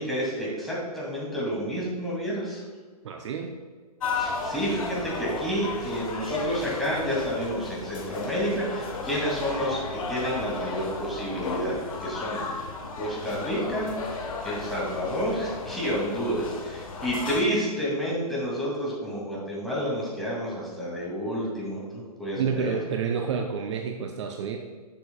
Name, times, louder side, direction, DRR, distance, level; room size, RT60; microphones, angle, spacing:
voice 1, 0.0-2.6 4.1-12.4 13.0-13.9 14.4-22.8, equal, ahead, -6 dB, 2.4 m, -30 dB
voice 2, 3.0-3.5 22.4-24.6, right 6 dB, 45° right, 4 dB, 0.7 m, -29 dB
sound 1, 4.0-17.4, left 4 dB, 55° left, 1.4 m, -34 dB
11.5 x 6.9 x 2.3 m, 1.5 s
figure-of-eight pair, 125°, 20 cm